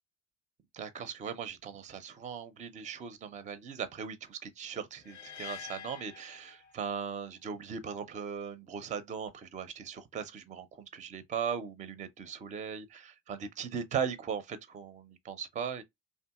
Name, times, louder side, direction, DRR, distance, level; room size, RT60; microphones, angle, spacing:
voice 1, 0.7-15.8, right 7 dB, 20° right, 0.5 m, -38 dB
sound 1, 5.0-7.2, left 8 dB, 85° left, 0.5 m, -47 dB
2.8 x 2.5 x 2.3 m
hypercardioid pair, 70°, 33 cm